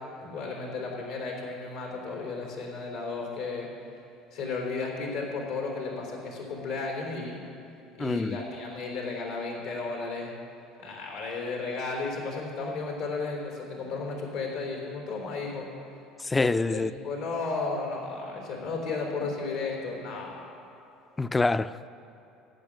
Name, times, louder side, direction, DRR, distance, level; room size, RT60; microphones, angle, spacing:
voice 1, 0.2-3.7 4.3-7.4 8.0-10.3 10.8-15.7 16.7-20.4, left 3 dB, 80° left, 3.5 m, -34 dB
voice 2, 8.0-8.4 16.2-16.9 21.2-21.9, left 3 dB, 15° left, 0.4 m, -26 dB
12.0 x 8.8 x 7.5 m
supercardioid pair, 90°, 0 cm